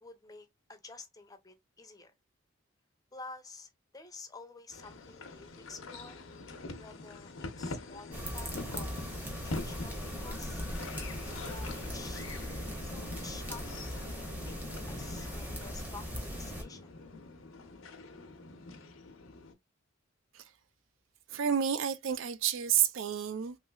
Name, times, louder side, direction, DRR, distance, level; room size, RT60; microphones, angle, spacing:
voice 1, 0.0-2.1 3.1-6.2 6.8-9.1 9.4-10.6 11.5-12.3 12.8-14.5 14.9-16.9, left 3 dB, 20° left, 0.6 m, -50 dB
sound 1, 4.7-19.5, left 3 dB, 90° left, 0.7 m, -44 dB
sound 2, 8.1-16.6, equal, 10° right, 0.9 m, -39 dB
voice 2, 21.3-23.6, right 8 dB, 80° right, 0.4 m, -30 dB
3.1 x 3.0 x 2.2 m
head